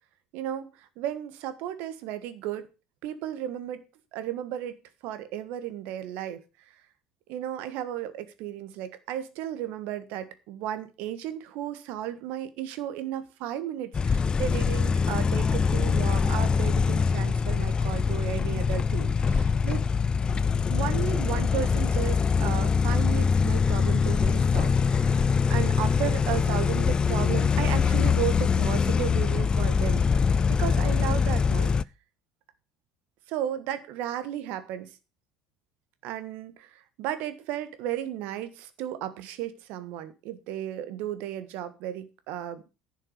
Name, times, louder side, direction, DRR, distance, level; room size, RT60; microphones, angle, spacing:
voice 1, 0.3-2.7 3.0-3.8 4.1-4.8 5.0-6.4 7.3-19.8 20.3-20.4 20.7-31.8 33.3-34.9 36.0-36.7 37.0-42.6, right 11 dB, 70° right, 12 dB, 1.5 m, -34 dB
sound 1, 13.9-31.8, left 5 dB, 30° left, 0.5 m, -24 dB
11.0 x 6.4 x 6.6 m, 0.30 s
hypercardioid pair, 70°, 3 cm